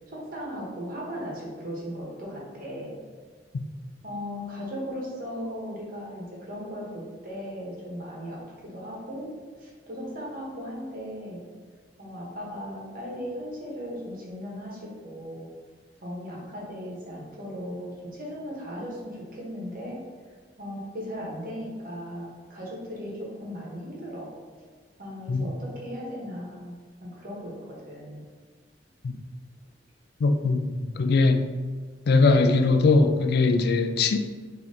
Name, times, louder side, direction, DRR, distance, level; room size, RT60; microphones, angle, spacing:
voice 1, 0.1-2.9 4.0-9.3 9.6-11.5 12.0-15.5 16.0-20.0 20.6-24.3 25.0-28.2, equal, 55° right, 1.2 m, -37 dB
voice 2, 30.2-31.5 32.1-34.2, left 3 dB, 65° left, 0.3 m, -21 dB
4.0 x 2.9 x 3.7 m
head